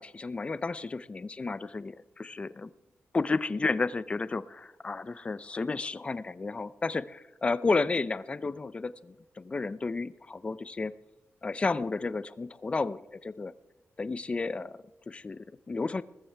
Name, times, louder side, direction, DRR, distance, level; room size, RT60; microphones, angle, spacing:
voice 1, 0.0-2.7 3.1-10.9 11.4-13.5 14.0-16.0, left 3 dB, 25° left, 16 dB, 0.5 m, -32 dB
20.0 x 13.5 x 3.4 m, 1.0 s
wide cardioid pair, 165°, 5 cm